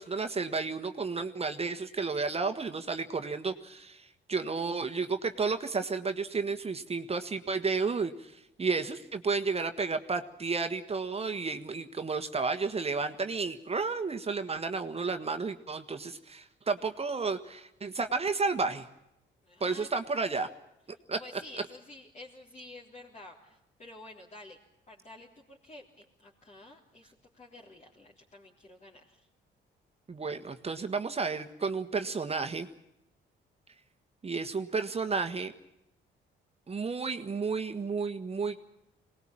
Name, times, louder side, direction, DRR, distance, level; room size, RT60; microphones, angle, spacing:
voice 1, 0.0-18.8 19.6-20.5 21.1-21.2 30.1-32.7 34.2-35.5 36.7-38.6, right 4 dB, 30° right, 7 dB, 1.5 m, -32 dB
voice 2, 19.4-19.9 21.2-24.6 24.9-29.3, left 2 dB, 35° left, -4 dB, 3.7 m, -50 dB
23.0 x 19.5 x 8.8 m, 0.84 s
cardioid pair, 90°, 20 cm